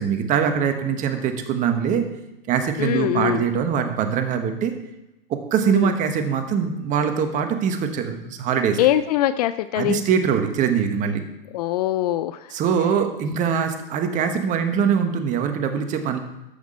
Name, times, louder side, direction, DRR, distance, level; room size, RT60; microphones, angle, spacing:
voice 1, 0.0-2.0 2.5-4.7 5.3-8.8 9.7-11.2 12.5-16.2, right 7 dB, 25° right, 6 dB, 1.2 m, -22 dB
voice 2, 2.8-3.4 5.6-5.9 8.8-10.0 11.5-12.5, left 13 dB, 45° left, 14 dB, 0.4 m, -22 dB
13.0 x 6.0 x 4.3 m, 0.93 s
hypercardioid pair, 135°, 29 cm